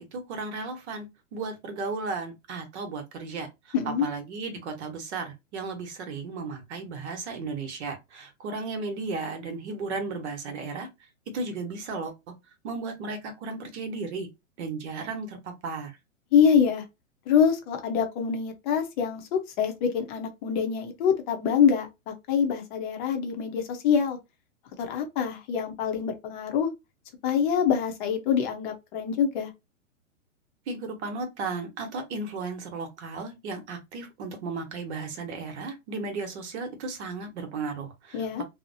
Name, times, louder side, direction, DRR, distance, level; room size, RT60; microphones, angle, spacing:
voice 1, 0.0-10.9 11.3-12.3 12.6-14.3 14.6-16.0 30.7-38.4, right 4 dB, 55° right, 1.0 m, -35 dB
voice 2, 3.7-4.1 16.3-16.8 17.3-24.2 24.8-26.7 27.2-29.5 38.1-38.4, left 7 dB, 35° left, 0.7 m, -25 dB
2.8 x 2.0 x 2.6 m
hypercardioid pair, 120°, 40 cm